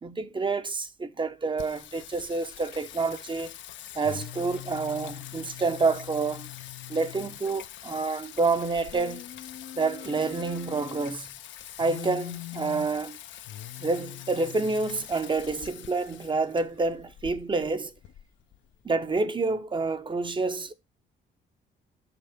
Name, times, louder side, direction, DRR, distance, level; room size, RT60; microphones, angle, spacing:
voice 1, 0.0-3.5 3.9-6.5 6.9-9.3 9.8-11.3 11.8-13.2 13.8-17.9 18.8-20.7, right 3 dB, 25° right, 0.7 m, -28 dB
Singing, 1.6-19.2, left 12 dB, 70° left, 0.6 m, -42 dB
6.0 x 5.9 x 3.5 m
cardioid pair, 90°, 20 cm